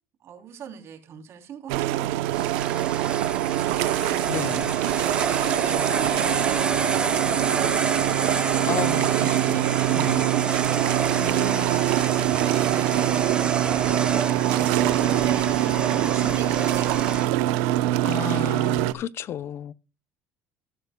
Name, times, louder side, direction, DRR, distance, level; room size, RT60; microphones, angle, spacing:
voice 1, 0.2-3.1 5.1-8.2 8.6-8.8 12.1-18.6, right 8 dB, 50° right, 3.1 m, -41 dB
sound 1, 1.7-18.9, right 15 dB, 90° right, 0.7 m, -24 dB
sound 2, 2.2-17.3, right 3 dB, 15° right, 0.6 m, -29 dB
voice 2, 4.3-4.7 8.7-10.4 11.2-11.8 18.0-19.7, left 11 dB, 45° left, 0.6 m, -33 dB
15.0 x 12.0 x 2.2 m
cardioid pair, 115°, 6 cm